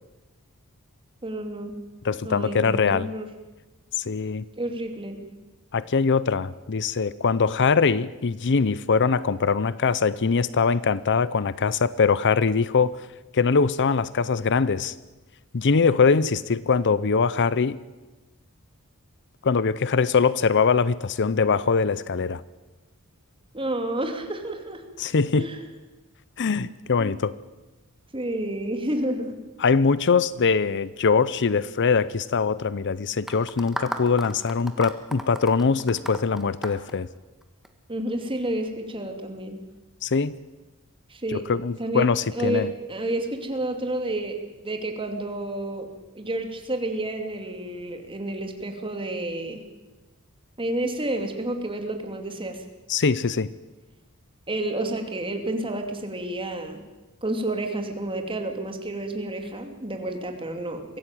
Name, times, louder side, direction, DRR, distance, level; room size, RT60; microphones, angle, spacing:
voice 1, 1.2-1.8 2.2-3.3 4.6-5.2 23.5-24.8 25.4-25.6 27.0-27.1 28.1-29.4 37.9-39.6 41.1-41.5 41.8-45.9 46.1-49.6 50.6-52.6 54.5-56.8 57.2-61.0, right 1 dB, 25° right, 5 dB, 2.8 m, -30 dB
voice 2, 2.0-3.1 4.0-4.4 5.7-13.0 13.3-14.9 15.5-17.8 19.4-22.4 25.0-25.5 26.4-27.3 29.6-37.1 40.0-40.3 41.3-42.7 52.9-53.5, left 5 dB, 55° left, 18 dB, 0.6 m, -22 dB
sound 1, 33.3-37.7, equal, ahead, 1.7 m, -35 dB
23.5 x 16.0 x 9.2 m, 1.2 s
head